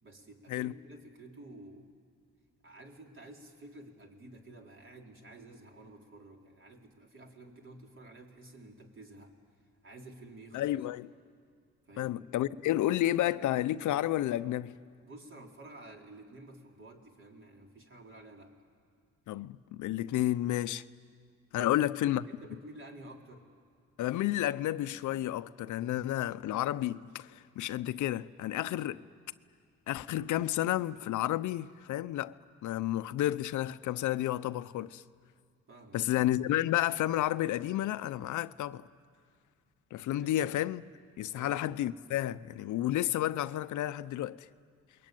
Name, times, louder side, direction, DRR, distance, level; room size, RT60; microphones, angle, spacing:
voice 1, 0.0-1.9 2.6-9.3 9.8-10.8 11.9-12.2 15.0-18.6 21.6-23.5 28.7-28.9 35.7-36.0 40.2-40.6 41.3-41.7, right 2 dB, 40° right, 4.1 m, -51 dB
voice 2, 10.5-11.1 12.0-14.7 19.3-20.8 21.5-22.2 24.0-29.0 29.9-32.3 32.6-35.0 35.9-38.8 39.9-40.8 41.2-44.5, left 13 dB, 75° left, 0.7 m, -31 dB
28.5 x 22.0 x 9.2 m
cardioid pair, 90°, 30 cm